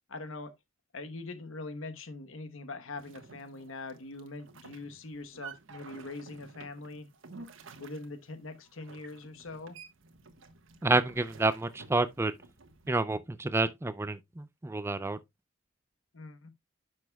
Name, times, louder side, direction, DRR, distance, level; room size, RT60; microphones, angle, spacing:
voice 1, 0.1-0.5 0.9-7.1 7.8-9.8 16.1-16.5, left 3 dB, 80° left, 1.1 m, -42 dB
sound 1, 3.0-12.9, right 4 dB, 75° right, 1.2 m, -51 dB
voice 2, 10.8-12.3 12.9-15.2, right 2 dB, 10° right, 0.4 m, -29 dB
10.5 x 6.2 x 2.2 m
head